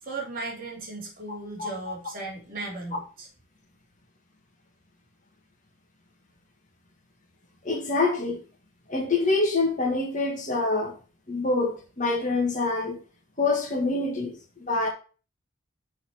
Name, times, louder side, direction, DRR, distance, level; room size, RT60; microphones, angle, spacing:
voice 1, 0.0-3.3, right 3 dB, 45° right, 2.7 m, -36 dB
voice 2, 1.3-1.7 7.6-8.4 8.9-10.9 11.3-13.0 13.4-14.9, left 3 dB, 40° left, 1.7 m, -26 dB
6.3 x 5.5 x 4.9 m
head